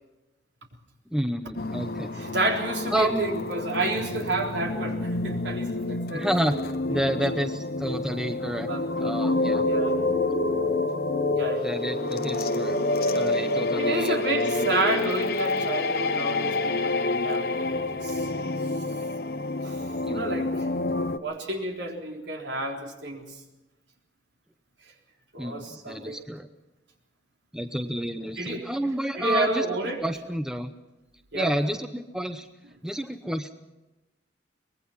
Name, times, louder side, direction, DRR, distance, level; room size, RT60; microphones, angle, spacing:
voice 1, 1.1-2.1 2.9-3.2 6.1-6.6 6.9-8.7 9.0-9.7 11.6-12.8 13.1-14.5 20.0-20.4 25.4-26.5 27.5-30.7 31.3-32.5 32.8-33.5, equal, 5° right, 8 dB, 0.7 m, -30 dB
sound 1, 1.6-21.2, left 2 dB, 55° left, 1.0 m, -29 dB
voice 2, 2.2-6.6 8.7-9.1 9.6-10.0 11.3-11.7 13.8-18.3 19.6-19.8 20.1-20.7 21.1-23.3 25.3-26.2 28.4-28.7 29.2-30.0 31.3-31.6, right 2 dB, 75° right, 1 dB, 3.8 m, -30 dB
sound 2, 9.2-16.8, left 2 dB, 20° right, 7.9 m, -30 dB
24.0 x 20.0 x 5.8 m, 1.0 s
head